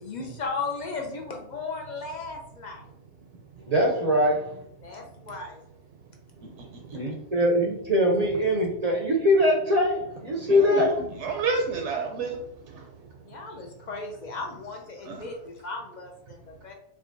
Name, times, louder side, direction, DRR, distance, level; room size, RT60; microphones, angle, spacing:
voice 1, 0.0-2.9 4.8-5.6 13.2-16.7, left 4 dB, 60° left, 1 dB, 0.4 m, -36 dB
voice 2, 3.7-4.6 6.9-11.1, equal, 45° right, -1 dB, 0.5 m, -23 dB
voice 3, 10.5-10.9 11.2-12.4 12.7-12.8 15.0-15.3, right 4 dB, 75° right, 2 dB, 0.9 m, -29 dB
5.0 x 2.2 x 2.6 m, 0.75 s
omnidirectional pair, 1.2 m